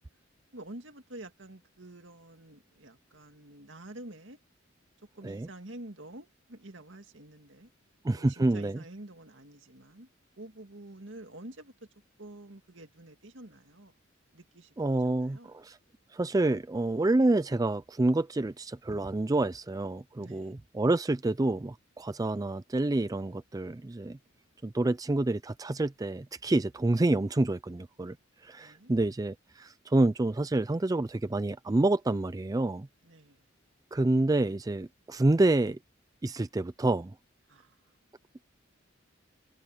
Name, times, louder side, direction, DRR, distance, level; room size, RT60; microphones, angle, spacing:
voice 1, 0.5-4.4 5.1-7.7 8.1-10.1 10.4-11.7 12.2-13.9 14.3-15.6 20.2-20.6 28.6-28.9 33.0-33.5 37.5-37.8, right 1 dB, 65° right, 2.4 m, -48 dB
voice 2, 8.0-8.8 14.8-15.8 16.1-24.2 24.6-28.2 28.4-32.9 33.9-35.8 36.2-37.2, right 2 dB, 20° right, 0.4 m, -28 dB
head